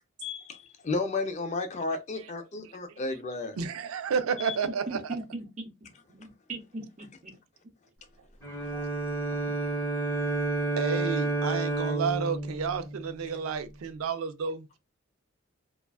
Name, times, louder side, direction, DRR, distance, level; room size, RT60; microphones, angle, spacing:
voice 1, 0.2-3.6 4.5-4.6, left 3 dB, 35° left, 0.4 m, -33 dB
voice 2, 2.6-3.0 3.6-5.2 10.8-14.8, right 6 dB, 85° right, 0.4 m, -31 dB
voice 3, 4.9-5.7 6.1-7.3 8.7-8.8, right 2 dB, 35° right, 0.6 m, -39 dB
Bowed string instrument, 8.4-13.7, right 2 dB, 10° left, 0.8 m, -30 dB
2.4 x 2.2 x 2.3 m
head